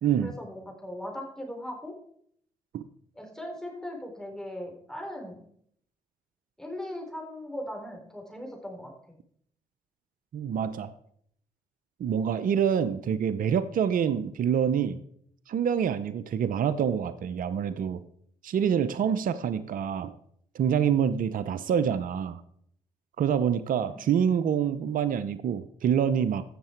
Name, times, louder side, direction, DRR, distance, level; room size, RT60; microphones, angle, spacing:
voice 1, 0.2-1.9 3.2-5.5 6.6-8.9 23.9-24.0, left 1 dB, 5° left, 0 dB, 4.3 m, -39 dB
voice 2, 10.3-10.9 12.0-15.0 15.5-18.0 18.4-20.1 20.5-22.4 23.2-26.4, right 8 dB, 60° right, 14 dB, 0.7 m, -26 dB
15.0 x 6.6 x 4.5 m, 0.67 s
supercardioid pair, 55°, 16 cm